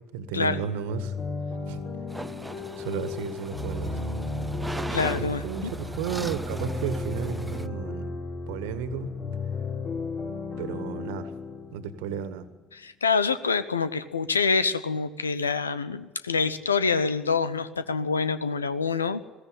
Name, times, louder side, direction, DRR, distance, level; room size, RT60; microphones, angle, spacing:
voice 1, 0.1-1.1 1.7-1.8 2.8-4.0 5.1-8.1 8.5-9.1 10.6-11.3 11.7-12.5, right 8 dB, 70° right, 11 dB, 1.8 m, -33 dB
sound 1, 0.9-12.6, left 3 dB, 45° left, 4.9 m, -34 dB
sound 2, 2.1-7.7, right 1 dB, 10° right, 0.9 m, -38 dB
voice 2, 4.9-5.7 12.7-19.2, left 5 dB, 90° left, 14 dB, 0.9 m, -26 dB
21.0 x 16.0 x 8.9 m, 1.2 s
figure-of-eight pair, 60°, 0 cm